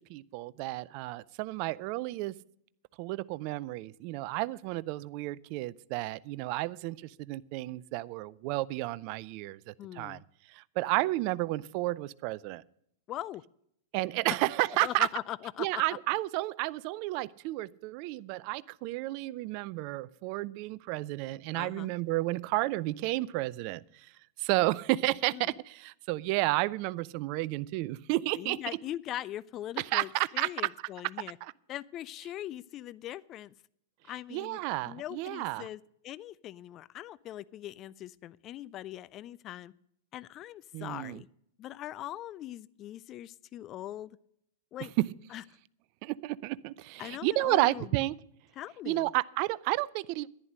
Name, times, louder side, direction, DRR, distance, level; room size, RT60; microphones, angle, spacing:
voice 1, 0.1-2.3 3.0-10.2 10.5-12.6 13.9-15.1 15.6-24.1 24.4-28.6 29.9-30.5 31.4-31.5 34.3-35.7 40.7-41.2 45.0-45.1 46.0-48.1 48.9-50.3, right 19 dB, 45° right, 20 dB, 0.4 m, -31 dB
voice 2, 9.8-10.2 13.1-13.4 14.8-15.7 21.5-21.9 25.3-25.5 28.3-31.4 31.7-33.5 34.1-34.6 34.9-39.7 40.1-41.3 41.6-44.2 44.7-44.9 45.3-45.4 47.0-48.0 48.6-49.1, left 13 dB, 35° left, 20 dB, 0.4 m, -41 dB
10.5 x 10.5 x 6.3 m, 0.72 s
figure-of-eight pair, 95°, 0 cm